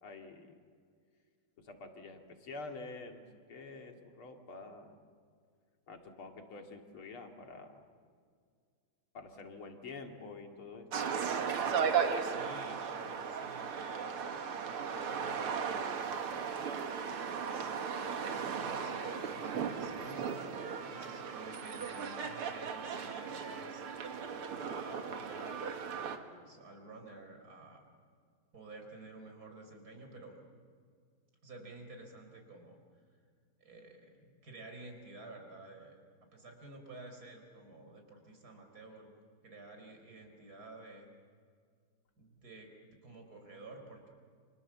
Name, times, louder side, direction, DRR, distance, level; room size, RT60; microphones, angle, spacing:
voice 1, 0.0-0.5 1.6-3.2 3.5-5.0 5.9-7.8 9.1-11.1, left 3 dB, 75° left, 4 dB, 3.2 m, -48 dB
sound 1, 10.9-26.2, right 6 dB, 85° right, 2.5 m, -36 dB
voice 2, 12.2-14.3 14.6-17.7 18.2-20.5 20.9-23.9 24.5-27.9 28.5-30.4 31.4-32.8 33.6-36.0 36.3-39.1 39.4-41.1 42.2-44.1, right 2 dB, 45° right, 4 dB, 4.7 m, -51 dB
29.0 x 26.5 x 7.4 m, 2.1 s
omnidirectional pair, 2.3 m